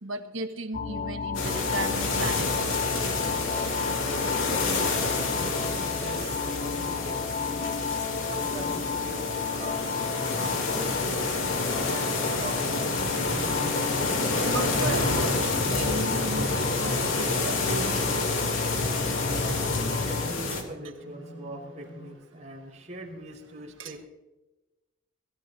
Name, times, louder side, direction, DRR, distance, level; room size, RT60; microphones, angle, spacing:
voice 1, 0.0-2.8 3.3-3.8 14.4-18.3 23.8-23.9, right 2 dB, 80° right, 1.5 m, -35 dB
sound 1, 0.7-20.3, left 5 dB, 40° left, 0.4 m, -33 dB
sound 2, 1.3-20.6, left 3 dB, 85° left, 3.1 m, -28 dB
voice 2, 4.4-5.1 5.7-7.2 7.5-7.8 8.1-9.9 10.4-11.0 11.8-13.6 19.9-24.1, right 1 dB, 35° right, 5.1 m, -42 dB
sound 3, 5.2-22.1, right 2 dB, 70° left, 6.6 m, -44 dB
22.5 x 15.0 x 2.8 m
head